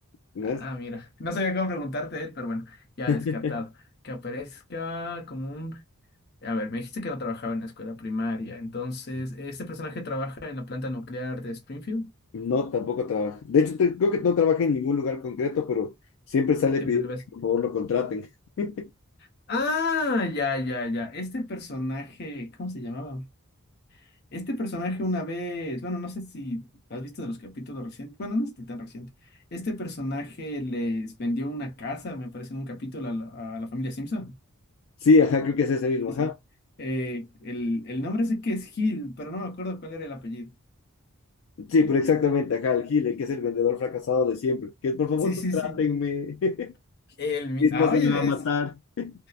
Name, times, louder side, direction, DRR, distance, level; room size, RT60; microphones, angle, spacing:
voice 1, 0.4-3.7 4.0-5.8 6.4-12.1 16.8-17.2 19.5-23.3 24.3-29.1 29.5-34.3 36.1-36.3 36.8-40.5 45.2-45.8 47.2-48.4, left 2 dB, 45° left, 0.7 m, -31 dB
voice 2, 3.1-3.6 12.3-15.9 16.3-17.1 17.4-18.3 18.6-18.9 35.0-36.3 41.6-46.7 47.6-49.1, left 5 dB, 65° left, 0.3 m, -24 dB
2.7 x 2.0 x 2.3 m
head